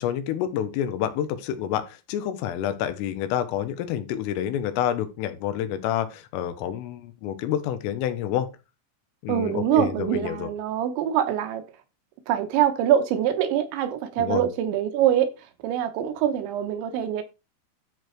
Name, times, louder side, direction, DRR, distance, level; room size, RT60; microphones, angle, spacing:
voice 1, 0.0-8.5 9.2-10.5 14.2-14.4, left 10 dB, 90° left, 3.8 m, -28 dB
voice 2, 9.3-11.6 12.3-15.3 15.6-17.2, right 10 dB, 75° right, 3.4 m, -24 dB
13.0 x 4.7 x 4.7 m
omnidirectional pair, 5.7 m